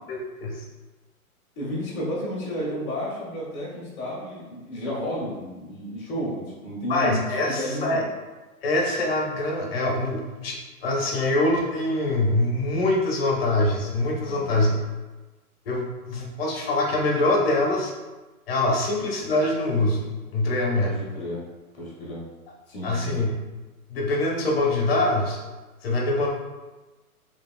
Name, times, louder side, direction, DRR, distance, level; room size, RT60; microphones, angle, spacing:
voice 1, 0.1-0.6 6.9-8.0 8.6-14.8 15.7-17.9 18.5-20.9 22.8-23.3 23.9-25.4 25.8-26.3, left 2 dB, 40° left, -1 dB, 0.8 m, -24 dB
voice 2, 1.6-8.0 14.2-14.7 20.8-21.4 21.8-22.2 22.7-23.2, equal, 10° left, -13 dB, 0.5 m, -32 dB
5.0 x 3.0 x 2.3 m, 1.2 s
hypercardioid pair, 165°, 44 cm